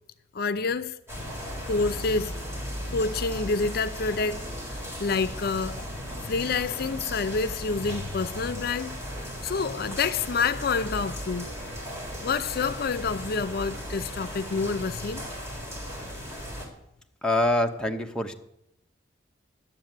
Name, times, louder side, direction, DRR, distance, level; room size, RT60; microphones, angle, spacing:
voice 1, 0.3-1.0 1.7-2.3 2.9-4.4 4.7-5.8 6.2-9.0 9.2-11.5 12.2-15.3, left 4 dB, 55° left, 0.5 m, -28 dB
sound 1, 1.1-16.7, equal, 15° right, 3.6 m, -36 dB
voice 2, 17.2-18.3, left 1 dB, 5° left, 0.9 m, -25 dB
11.0 x 7.4 x 9.0 m
head